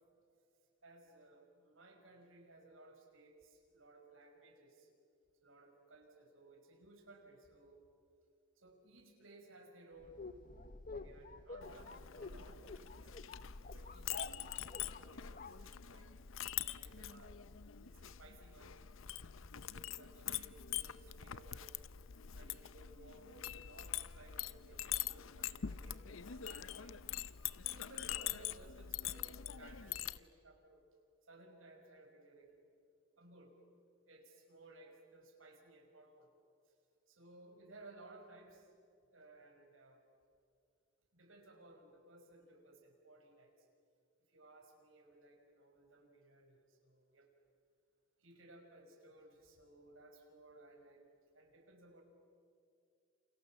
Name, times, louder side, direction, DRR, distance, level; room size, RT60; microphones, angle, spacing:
voice 1, 0.8-4.9 5.4-7.8 8.6-10.2 10.9-13.1 13.7-16.1 16.8-17.4 17.8-18.7 19.5-21.7 22.3-27.2 27.6-30.8 31.2-32.6 33.2-33.6 34.1-36.3 36.7-36.8 37.1-38.7 39.1-40.0 41.1-43.7 44.3-47.3 48.2-51.0 51.3-52.0, right 2 dB, 85° right, 3 dB, 5.5 m, -60 dB
sound 1, 10.0-16.3, left 3 dB, 40° left, 0.8 m, -50 dB
Chink clink, 11.6-30.2, left 11 dB, 85° left, 0.7 m, -44 dB
29.0 x 28.0 x 7.3 m, 2.5 s
head